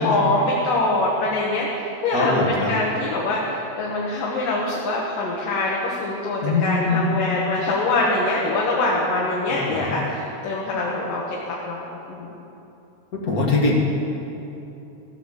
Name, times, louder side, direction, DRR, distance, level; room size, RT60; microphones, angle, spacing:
voice 1, 0.0-12.3, left 2 dB, 80° left, -3 dB, 2.9 m, -24 dB
voice 2, 2.1-2.7 6.4-7.1 9.7-9.9 13.1-13.8, left 3 dB, 35° left, -2 dB, 1.6 m, -22 dB
14.5 x 7.7 x 7.7 m, 2.9 s
omnidirectional pair, 3.9 m